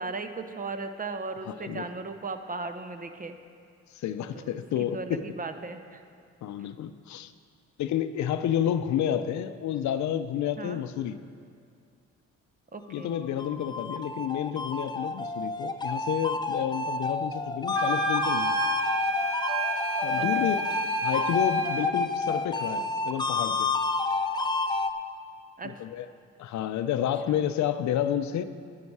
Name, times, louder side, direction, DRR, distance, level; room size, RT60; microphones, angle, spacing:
voice 1, 0.0-3.3 4.9-6.0 10.6-10.8 12.7-13.2 20.2-20.5 25.6-25.7 27.3-27.5, right 3 dB, 30° right, 8 dB, 0.7 m, -36 dB
voice 2, 1.5-1.8 3.9-5.3 6.4-7.3 7.8-11.2 12.9-18.6 20.0-20.6 21.0-23.7 25.6-26.1 26.4-28.4, left 10 dB, 70° left, 11 dB, 0.6 m, -30 dB
sound 1, 13.1-24.9, left 3 dB, 15° left, 0.5 m, -29 dB
sound 2, 17.7-22.0, right 3 dB, 45° right, 1.2 m, -31 dB
11.0 x 9.6 x 4.7 m, 2.3 s
cardioid pair, 90°, 30 cm